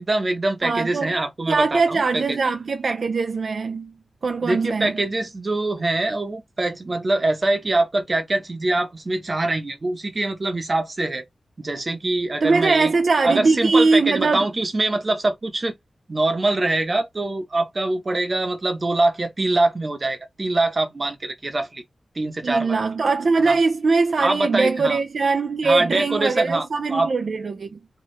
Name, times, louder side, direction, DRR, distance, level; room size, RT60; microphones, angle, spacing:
voice 1, 0.0-2.4 4.4-11.2 11.6-12.9 13.2-15.7 16.1-21.8 22.2-22.8 23.4-23.6 24.2-25.0 25.6-27.1, right 2 dB, 35° right, 0.8 m, -23 dB
voice 2, 0.6-1.1 1.5-3.9 4.2-4.9 12.4-14.5 22.4-27.8, right 4 dB, 65° right, 0.3 m, -21 dB
2.6 x 2.3 x 3.1 m
wide cardioid pair, 115°, 0 cm